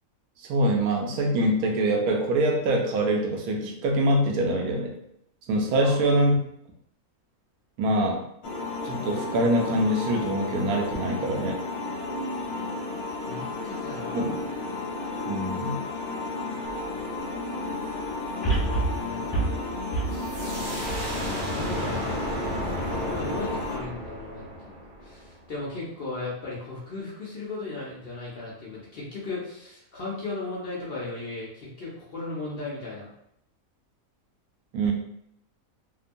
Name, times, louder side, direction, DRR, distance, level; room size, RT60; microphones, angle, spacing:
voice 1, 0.5-5.0 5.5-6.4 7.8-8.2 8.8-11.6 14.1-14.3 15.3-15.8 34.7-34.9, right 1 dB, 85° right, 1 dB, 1.1 m, -24 dB
voice 2, 5.7-6.1 13.3-14.4 18.4-19.3 21.5-22.0 22.9-33.1, left 2 dB, 55° left, -5 dB, 0.7 m, -36 dB
sound 1, 8.4-23.8, left 2 dB, 85° left, 1.1 m, -33 dB
sound 2, 16.7-16.8 18.4-21.7 22.2-22.3, right 3 dB, 20° left, 1.1 m, -28 dB
sound 3, 20.1-25.6, equal, 55° right, 0.8 m, -34 dB
2.9 x 2.1 x 2.5 m, 0.75 s
omnidirectional pair, 1.5 m